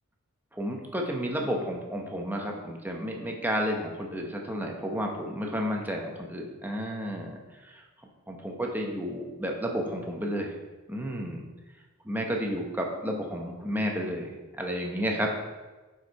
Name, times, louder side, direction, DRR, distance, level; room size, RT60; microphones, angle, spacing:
voice 1, 0.5-7.8 8.3-10.5 10.9-11.4 12.0-15.3, equal, 10° right, 1 dB, 1.0 m, -32 dB
7.1 x 4.9 x 4.7 m, 1.2 s
head